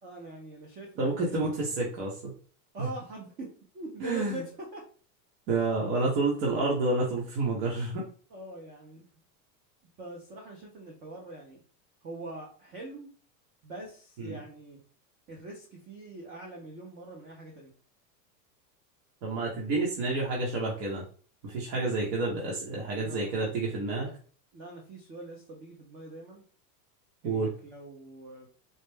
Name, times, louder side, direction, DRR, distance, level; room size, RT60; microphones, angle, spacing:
voice 1, 0.0-1.4 2.7-4.8 8.3-9.0 10.0-11.6 12.0-13.1 13.6-14.8 15.3-17.7 21.9-22.1 23.0-23.5 24.0-24.1 24.5-26.4 27.2-28.5, right 2 dB, 20° right, -1 dB, 0.4 m, -43 dB
voice 2, 1.0-2.3 2.8-2.9 4.0-4.4 5.5-8.1 14.2-14.4 19.2-21.0 21.4-24.1 27.2-27.5, right 3 dB, 50° right, -3 dB, 1.1 m, -29 dB
4.1 x 2.1 x 3.3 m, 0.41 s
supercardioid pair, 150°, 47 cm